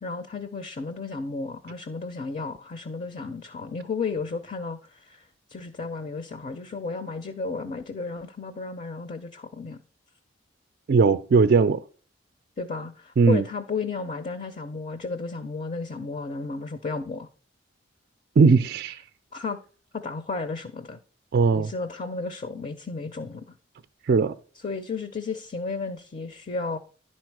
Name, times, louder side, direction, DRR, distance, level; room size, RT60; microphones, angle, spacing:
voice 1, 0.0-9.8 12.6-17.3 19.3-19.6 19.9-21.0 21.5-23.5 24.6-26.8, left 4 dB, 40° left, 0.5 m, -33 dB
voice 2, 10.9-11.8 13.2-13.4 18.4-19.0 21.3-21.7 24.1-24.3, right 4 dB, 50° right, 0.3 m, -19 dB
10.5 x 4.2 x 4.6 m
head